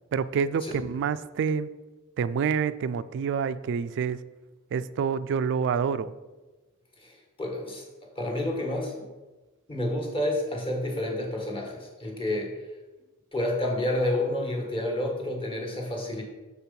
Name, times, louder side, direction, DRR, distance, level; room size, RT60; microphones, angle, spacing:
voice 1, 0.1-1.7 2.2-4.2 4.7-6.1, right 6 dB, 55° right, 14 dB, 0.3 m, -27 dB
voice 2, 7.0-7.8 8.1-9.0 9.7-12.5 13.3-16.2, left 1 dB, 25° left, 0 dB, 1.3 m, -29 dB
6.9 x 4.4 x 5.3 m, 1.2 s
head